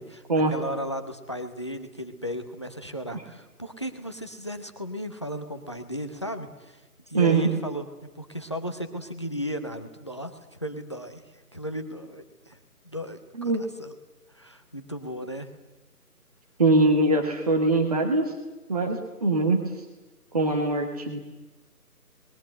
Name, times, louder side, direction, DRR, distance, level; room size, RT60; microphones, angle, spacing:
voice 1, 0.5-6.8 7.1-7.9 8.1-11.2 11.5-12.6 12.8-13.9 14.3-15.5, equal, 20° left, 8 dB, 0.9 m, -35 dB
voice 2, 7.1-7.5 13.4-13.6 16.6-18.3 18.7-19.6 20.3-21.2, right 2 dB, 25° right, 4 dB, 1.5 m, -22 dB
25.5 x 21.0 x 7.8 m, 1.1 s
figure-of-eight pair, 165°, 46 cm